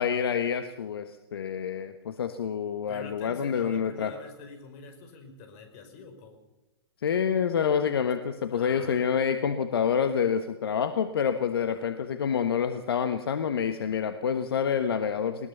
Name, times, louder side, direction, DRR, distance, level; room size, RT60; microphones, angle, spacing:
voice 1, 0.0-4.1 7.0-15.5, left 7 dB, 65° left, 9 dB, 1.4 m, -27 dB
voice 2, 2.9-6.4 8.5-9.0 11.7-11.9, left 4 dB, 40° left, 6 dB, 5.1 m, -45 dB
21.0 x 20.0 x 6.8 m, 1.0 s
figure-of-eight pair, 115°, 13 cm